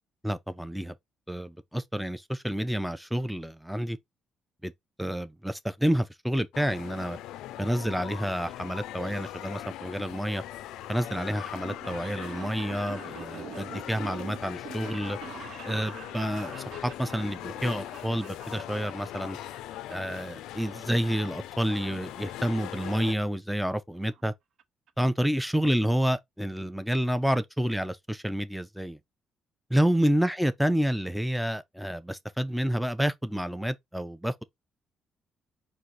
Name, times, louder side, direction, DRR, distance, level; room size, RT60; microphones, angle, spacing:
voice 1, 0.2-0.9 1.3-4.0 4.6-4.7 5.0-7.2 7.6-10.4 10.9-15.2 15.6-19.4 19.9-24.3 25.0-29.0 29.7-34.4, equal, ahead, 0.5 m, -29 dB
sound 1, 6.5-23.2, left 13 dB, 90° left, 0.4 m, -40 dB
sound 2, 11.5-19.3 19.5-20.2 20.6-21.6 21.9-22.0 22.9-23.0 23.2-23.3 23.6-23.7 23.9-24.2 24.6-24.7 24.9-25.0, right 8 dB, 70° right, 0.6 m, -45 dB
4.6 x 2.5 x 4.0 m
cardioid pair, 90°, 0 cm